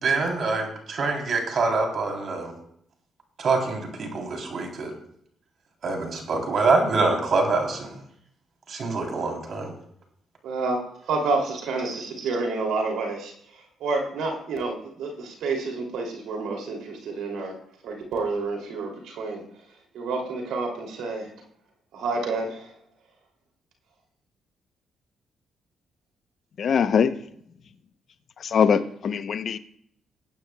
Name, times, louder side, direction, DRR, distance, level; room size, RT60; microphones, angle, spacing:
voice 1, 0.0-2.5 3.4-4.9 5.8-8.0 8.7-9.7 11.9-12.0, right 3 dB, 60° right, 2 dB, 3.4 m, -25 dB
voice 2, 10.4-10.8 11.1-17.5 17.8-19.4 19.9-21.3 21.9-22.7, right 3 dB, 80° right, 0 dB, 2.9 m, -29 dB
voice 3, 26.6-27.1 28.4-29.6, left 7 dB, 60° left, 12 dB, 0.8 m, -22 dB
20.0 x 9.7 x 2.3 m, 0.69 s
supercardioid pair, 60°, 0 cm